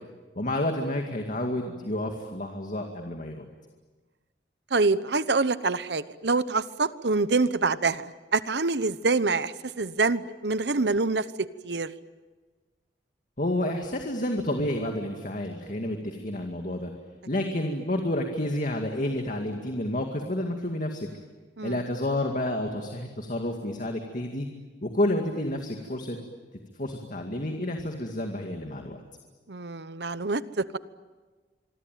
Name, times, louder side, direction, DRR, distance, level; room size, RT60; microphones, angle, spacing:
voice 1, 0.3-3.5 13.4-16.9 17.3-21.1 21.6-24.5 24.8-26.2 26.8-29.0, left 1 dB, 45° left, 3 dB, 2.2 m, -30 dB
voice 2, 4.7-11.9 21.6-21.7 29.5-30.8, right 3 dB, 70° right, 15 dB, 1.0 m, -26 dB
26.0 x 23.5 x 9.2 m, 1.3 s
head